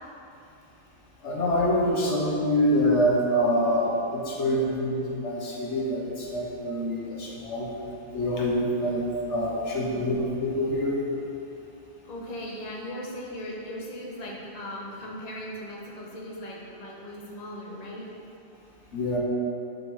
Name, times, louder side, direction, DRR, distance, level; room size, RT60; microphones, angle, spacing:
voice 1, 1.2-7.7 8.1-11.0 18.9-19.2, equal, 70° left, -3 dB, 1.4 m, -25 dB
voice 2, 9.9-10.2 12.0-18.1, equal, 35° left, -3 dB, 1.2 m, -38 dB
11.0 x 5.4 x 4.1 m, 2.7 s
omnidirectional pair, 1.3 m